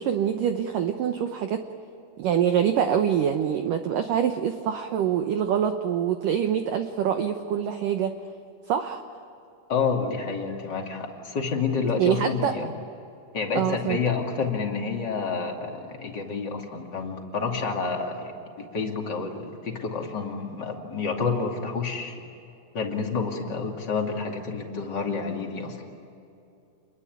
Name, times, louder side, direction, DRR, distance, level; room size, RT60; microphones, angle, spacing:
voice 1, 0.0-1.6 2.2-8.1 8.7-9.0 12.0-12.5 13.5-14.0, right 9 dB, 75° right, 7 dB, 2.0 m, -25 dB
voice 2, 9.7-12.7 13.3-18.3 18.6-22.2 22.7-25.8, left 5 dB, 30° left, 1 dB, 2.4 m, -29 dB
28.5 x 22.0 x 9.4 m, 2.7 s
omnidirectional pair, 5.2 m